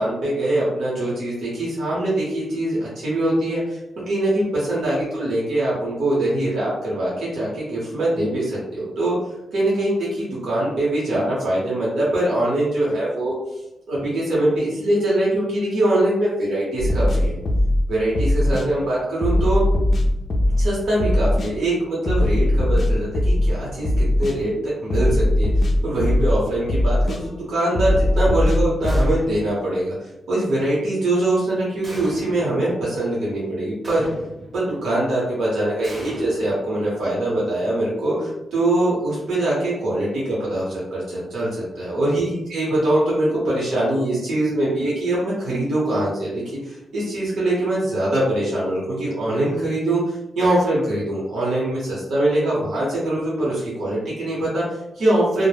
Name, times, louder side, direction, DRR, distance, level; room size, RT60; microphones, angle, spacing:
voice 1, 0.0-9.2 9.5-13.3 13.9-17.4 17.9-19.6 20.6-29.9 30.3-34.1 34.5-46.3 46.6-55.5, right 1 dB, 75° right, -7 dB, 0.8 m, -23 dB
sound 1, 16.8-17.8 18.1-18.7 19.2-20.7 21.0-21.5 22.1-23.5 23.8-24.4 24.9-26.4 26.7-27.2 27.7-29.1, left 1 dB, 50° left, 0.3 m, -19 dB
sound 2, 28.8-29.6 31.8-32.6 33.8-34.6 35.8-37.1, right 1 dB, 30° right, 0.7 m, -38 dB
2.0 x 2.0 x 3.2 m, 0.89 s
wide cardioid pair, 120°, 0 cm